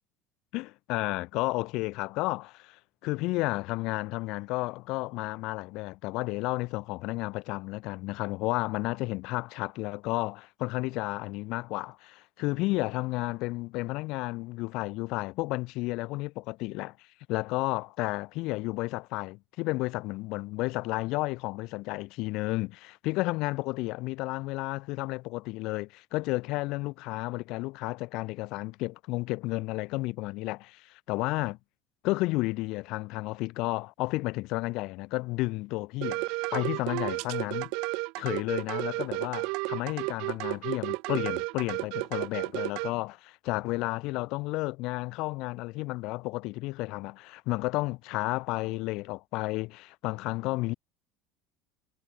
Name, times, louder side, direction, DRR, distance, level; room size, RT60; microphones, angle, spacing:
voice 1, 0.5-17.0 17.3-31.6 32.0-37.7 38.2-50.7, left 22 dB, 60° left, 2.9 m, -32 dB
sound 1, 36.0-42.9, right 29 dB, 65° right, 4.0 m, -32 dB
cardioid pair, 160°, 0 cm